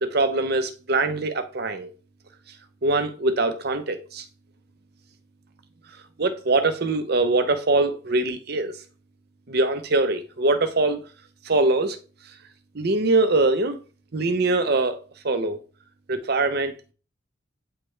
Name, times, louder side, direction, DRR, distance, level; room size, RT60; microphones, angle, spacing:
voice 1, 0.0-1.9 2.8-4.2 6.2-8.7 9.5-11.0 11.5-12.0 12.7-13.8 14.1-15.0 15.2-15.6 16.1-16.7, right 2 dB, 50° right, 0.8 m, -22 dB
8.7 x 3.4 x 3.2 m
head